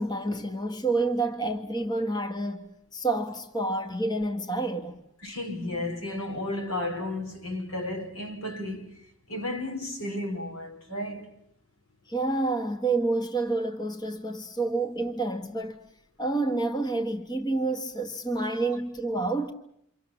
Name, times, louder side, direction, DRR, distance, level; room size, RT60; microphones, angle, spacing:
voice 1, 0.0-5.0 12.1-15.8 16.2-19.5, right 2 dB, 20° left, 1.4 m, -28 dB
voice 2, 5.2-9.0 9.3-11.3, left 1 dB, 75° left, 4.6 m, -33 dB
28.5 x 25.0 x 7.2 m
head